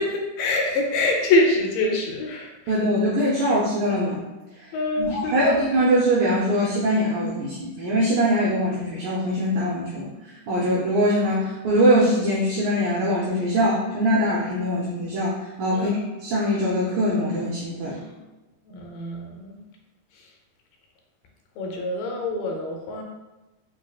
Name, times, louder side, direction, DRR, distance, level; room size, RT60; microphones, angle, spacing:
voice 1, 0.0-2.8 3.3-3.5 4.7-5.7 15.7-16.0 18.6-19.6 20.1-20.4 21.6-23.0, left 2 dB, 80° left, 0 dB, 2.1 m, -25 dB
voice 2, 2.7-4.2 4.6-4.7 5.0-15.9 16.2-18.0, equal, 85° right, -6 dB, 1.7 m, -22 dB
6.1 x 2.2 x 2.3 m, 1.1 s
omnidirectional pair, 4.0 m